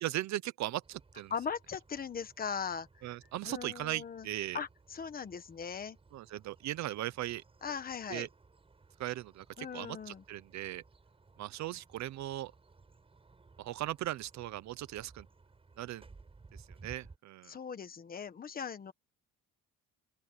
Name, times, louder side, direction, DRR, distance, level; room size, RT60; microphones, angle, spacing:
voice 1, 0.0-1.3 3.0-4.6 6.1-7.4 8.1-8.3 9.0-10.8 11.4-12.5 13.6-15.3 15.8-16.0 16.8-17.5, right 14 dB, 50° right, 0.7 m, -38 dB
sound 1, 0.8-17.2, right 4 dB, 15° right, 7.8 m, -60 dB
voice 2, 1.3-3.0 3.4-4.3 4.5-6.0 7.6-8.3 9.6-10.2 17.5-18.9, left 6 dB, 25° left, 1.3 m, -39 dB
open air
cardioid pair, 175°, 36 cm